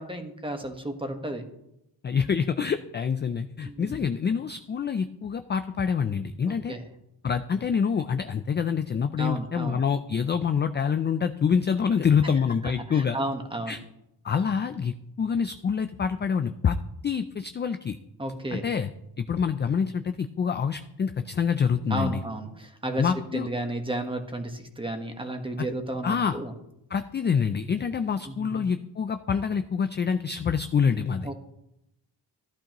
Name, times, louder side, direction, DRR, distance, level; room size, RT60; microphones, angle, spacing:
voice 1, 0.0-1.4 3.6-4.0 6.4-6.8 9.2-9.8 12.6-13.8 18.2-18.7 21.9-26.5 28.2-28.6 31.2-31.3, right 1 dB, 10° right, 5 dB, 1.3 m, -33 dB
voice 2, 2.0-6.7 7.2-13.2 13.7-13.8 14.2-16.8 17.0-18.0 18.5-18.9 19.2-22.2 23.0-23.5 26.0-26.4 26.9-31.3, left 6 dB, 25° left, 9 dB, 0.4 m, -26 dB
14.5 x 11.5 x 3.0 m, 0.84 s
cardioid pair, 125°, 41 cm